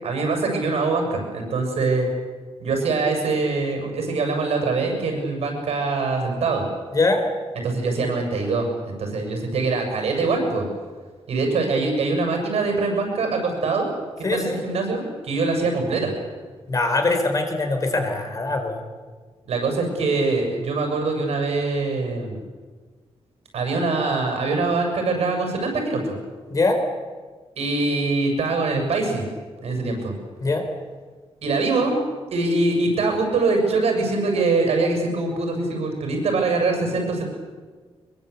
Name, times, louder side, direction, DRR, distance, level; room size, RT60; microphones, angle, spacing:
voice 1, 0.0-2.1 2.6-6.6 7.6-10.7 11.3-13.9 14.2-16.1 19.4-22.4 23.5-26.2 27.6-29.3 29.6-30.1 31.4-32.0 32.3-37.2, right 3 dB, 75° right, 3 dB, 7.1 m, -23 dB
voice 2, 14.2-14.6 16.7-18.8 26.5-26.8 30.4-30.6, left 3 dB, 35° left, 5 dB, 4.2 m, -22 dB
23.5 x 23.0 x 8.4 m, 1.4 s
wide cardioid pair, 155°, 11 cm